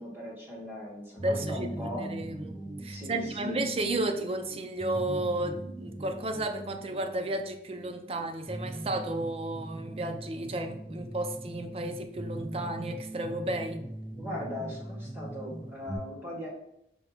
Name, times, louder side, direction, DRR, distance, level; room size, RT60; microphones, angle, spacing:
voice 1, 0.0-2.1 2.9-3.6 14.1-16.5, left 1 dB, 10° right, -5 dB, 1.4 m, -38 dB
sound 1, 1.2-16.0, right 1 dB, 30° left, 1.1 m, -40 dB
voice 2, 1.2-13.8, right 1 dB, 35° right, 6 dB, 0.4 m, -33 dB
4.8 x 2.2 x 4.8 m, 0.78 s
head